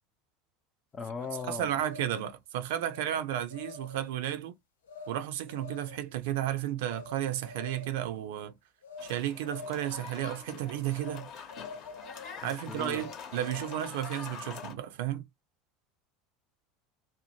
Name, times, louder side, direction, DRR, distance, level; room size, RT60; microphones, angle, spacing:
voice 1, 0.9-1.8 12.4-13.0, left 5 dB, 30° left, 0.7 m, -39 dB
sound 1, 1.2-2.3 2.9-3.2 3.5-4.1 4.9-5.1 5.5-6.0 6.8-7.1 7.4-8.1 8.8-9.1 9.4-10.1 11.0-11.2 11.5-12.3 12.9-13.9, left 4 dB, 80° left, 0.7 m, -46 dB
voice 2, 1.5-4.5 5.1-8.6 9.0-11.3 12.4-15.2, right 12 dB, 65° right, 0.5 m, -33 dB
sound 2, 9.0-14.7, left 6 dB, 50° left, 1.0 m, -45 dB
2.8 x 2.1 x 2.9 m
hypercardioid pair, 75°, 0 cm